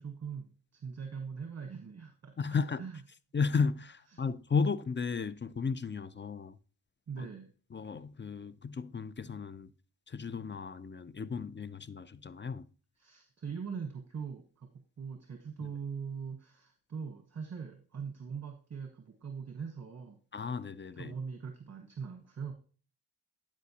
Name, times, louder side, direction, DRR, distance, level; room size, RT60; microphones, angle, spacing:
voice 1, 0.0-2.3 2.8-3.0 4.1-4.2 7.1-7.5 13.0-14.7 15.0-20.2 20.9-22.5, right 6 dB, 40° right, 1.2 m, -41 dB
voice 2, 2.4-2.8 3.3-6.5 7.2-7.3 7.7-9.7 10.1-12.7 20.3-21.1, left 5 dB, 25° left, 0.5 m, -34 dB
11.5 x 5.1 x 2.8 m
supercardioid pair, 45°, 41 cm